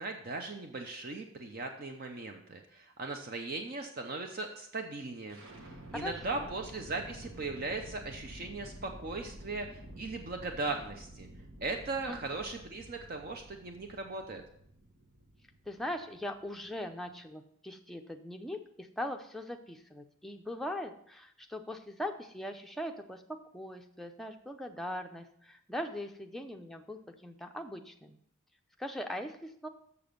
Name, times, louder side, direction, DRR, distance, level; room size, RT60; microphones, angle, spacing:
voice 1, 0.0-5.4 5.9-11.3 11.6-14.4, right 3 dB, 45° right, 4 dB, 0.6 m, -38 dB
sound 1, 5.3-17.2, right 1 dB, 75° right, 1.3 m, -50 dB
voice 2, 5.9-6.5 12.1-12.2 15.7-28.2 28.8-29.7, left 1 dB, ahead, 3 dB, 0.5 m, -40 dB
7.0 x 6.8 x 5.2 m, 0.69 s
head